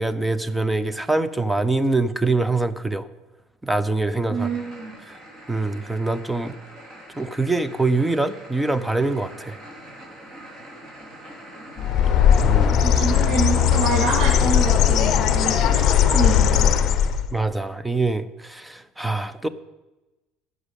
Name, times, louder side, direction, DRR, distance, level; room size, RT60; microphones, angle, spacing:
voice 1, 0.0-3.1 3.6-4.5 5.5-6.5 7.2-9.6 12.4-12.8 17.3-19.5, right 3 dB, 5° right, 14 dB, 0.5 m, -24 dB
voice 2, 4.3-4.9 12.8-16.7, right 3 dB, 60° right, -4 dB, 2.9 m, -27 dB
sound 1, 4.4-16.7, right 1 dB, 35° right, 3.2 m, -43 dB
Bird, 11.8-17.3, left 9 dB, 40° left, 0.7 m, -18 dB
10.5 x 6.2 x 8.3 m, 1.1 s
cardioid pair, 155°, 0 cm